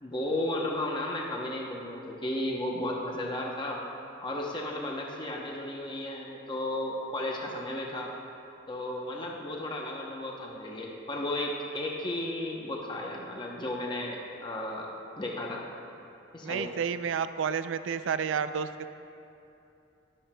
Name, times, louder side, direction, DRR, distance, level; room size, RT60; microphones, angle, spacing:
voice 1, 0.0-3.8 4.2-8.1 8.7-14.9 15.2-15.6 16.3-16.8, left 1 dB, 25° left, -1 dB, 0.7 m, -34 dB
voice 2, 16.4-18.9, right 7 dB, 80° right, 12 dB, 0.3 m, -30 dB
13.0 x 10.5 x 2.2 m, 2.8 s
head